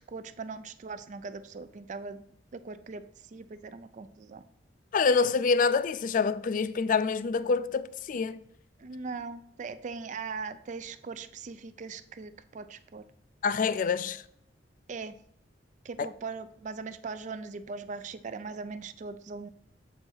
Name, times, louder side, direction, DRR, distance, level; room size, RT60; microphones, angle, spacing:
voice 1, 0.1-2.2 2.5-3.0 3.3-4.4 8.8-13.0 14.9-15.2 15.8-19.5, right 4 dB, 40° right, 0.4 m, -40 dB
voice 2, 4.9-8.4 13.4-14.2 16.0-16.1, left 5 dB, 45° left, 0.3 m, -26 dB
7.4 x 4.5 x 4.6 m
head